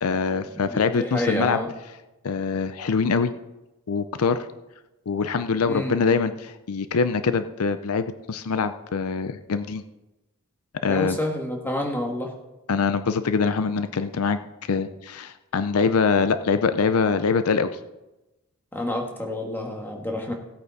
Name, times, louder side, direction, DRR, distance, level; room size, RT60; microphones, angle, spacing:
voice 1, 0.0-1.6 2.2-3.3 3.9-4.5 5.1-9.8 10.8-11.2 12.7-17.7, left 5 dB, 75° left, 11 dB, 0.6 m, -24 dB
voice 2, 0.5-1.7 5.7-5.9 10.8-12.3 18.7-20.3, left 1 dB, 10° left, 1 dB, 1.6 m, -29 dB
16.5 x 8.4 x 4.1 m, 1.0 s
head